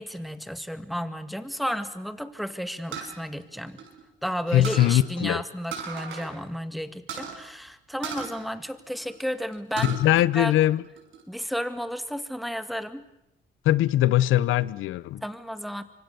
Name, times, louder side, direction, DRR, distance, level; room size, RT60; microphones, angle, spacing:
voice 1, 0.0-3.8 4.2-10.0 10.3-10.6 11.3-13.0 15.2-15.8, equal, ahead, 2.0 m, -32 dB
sound 1, 2.9-4.3 4.6-5.0 5.7-6.3 6.6-6.7 7.1-7.4 8.0-9.2 9.5-10.0 10.5-11.2, right 7 dB, 80° right, 6.1 m, -36 dB
voice 2, 4.5-5.4 9.8-10.8 13.6-15.2, left 14 dB, 85° left, 0.8 m, -21 dB
25.0 x 25.0 x 6.9 m
cardioid pair, 90°, 20 cm